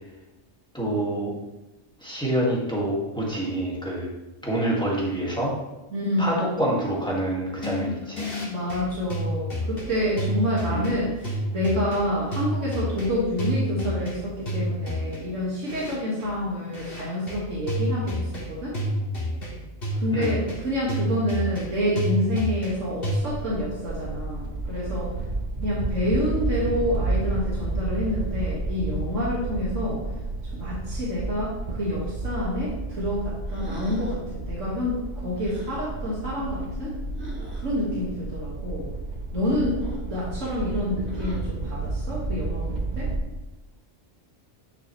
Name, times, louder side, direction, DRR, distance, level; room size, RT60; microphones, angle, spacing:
voice 1, 0.7-1.3 2.0-4.1 4.4-5.5 6.2-8.3 10.7-10.9 20.1-20.3, right 1 dB, 5° left, -5 dB, 1.9 m, -26 dB
voice 2, 5.9-6.5 8.4-18.8 20.0-25.1 25.6-30.0 30.5-36.9 37.6-38.9 39.3-43.1, left 1 dB, 80° right, -6 dB, 2.2 m, -28 dB
sound 1, 7.6-23.2, equal, 50° left, 2.4 m, -29 dB
sound 2, 23.2-43.2, right 3 dB, 40° right, 1.0 m, -31 dB
sound 3, 33.5-34.2 35.4-35.8 37.2-37.6 39.8-40.2 41.0-41.6, equal, 60° right, 2.6 m, -41 dB
10.0 x 6.7 x 3.2 m, 1.0 s
omnidirectional pair, 1.3 m